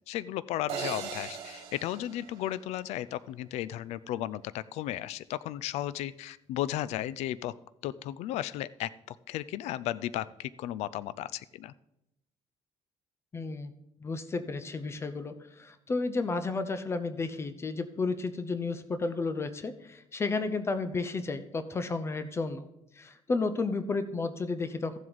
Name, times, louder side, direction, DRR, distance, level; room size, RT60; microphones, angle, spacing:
voice 1, 0.1-7.5 7.8-8.9 9.3-11.7, left 13 dB, 80° left, 17 dB, 0.4 m, -34 dB
sound 1, 0.7-3.0, right 6 dB, 60° right, 2.3 m, -39 dB
voice 2, 13.3-13.7 14.0-22.7 23.0-25.0, left 3 dB, 25° left, 11 dB, 0.6 m, -32 dB
14.5 x 7.6 x 4.0 m, 0.84 s
cardioid pair, 150°, 11 cm